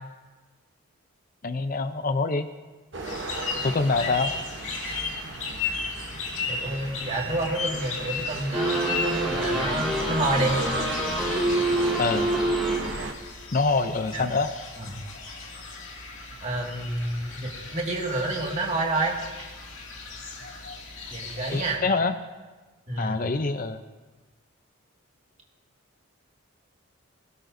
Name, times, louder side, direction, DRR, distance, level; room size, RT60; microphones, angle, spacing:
voice 1, 1.4-2.5 3.6-4.3 12.0-12.3 13.5-14.5 21.5-22.1 23.0-23.8, left 3 dB, 40° left, 9 dB, 0.5 m, -25 dB
sound 1, 2.9-13.1, right 3 dB, 55° right, 0.9 m, -36 dB
sound 2, 3.0-21.8, left 4 dB, 70° left, 2.2 m, -36 dB
voice 2, 6.5-10.6 14.1-14.2 14.8-14.9 16.4-19.5 21.1-21.8 22.9-23.2, right 2 dB, 35° right, -1 dB, 2.0 m, -29 dB
sound 3, 8.5-13.1, right 1 dB, ahead, 2.1 m, -27 dB
20.5 x 17.5 x 2.6 m, 1.3 s
head